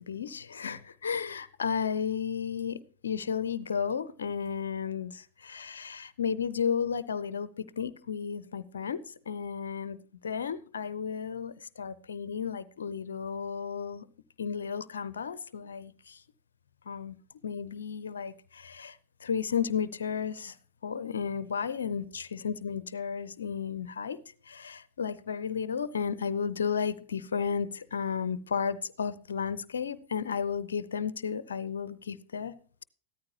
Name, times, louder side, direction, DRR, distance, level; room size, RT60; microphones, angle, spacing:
voice 1, 0.1-10.0 10.2-14.1 14.4-16.2 16.9-17.2 17.4-20.6 20.8-32.5, left 7 dB, 70° left, 17 dB, 0.6 m, -33 dB
14.5 x 13.5 x 2.9 m, 0.43 s
figure-of-eight pair, 90°, 0 cm